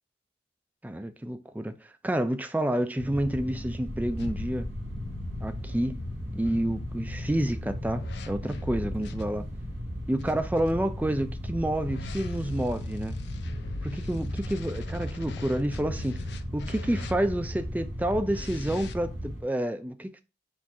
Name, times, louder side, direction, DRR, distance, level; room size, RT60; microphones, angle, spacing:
voice 1, 0.8-4.7 5.4-6.0 6.3-9.5 10.1-13.2 13.8-16.2 16.5-20.2, right 1 dB, 10° right, 0.3 m, -29 dB
sound 1, 3.0-19.4, equal, 90° right, 2.2 m, -36 dB
sound 2, 4.2-9.2 10.2-17.6 18.3-18.9, left 4 dB, 65° left, 0.4 m, -41 dB
4.2 x 2.4 x 4.7 m
head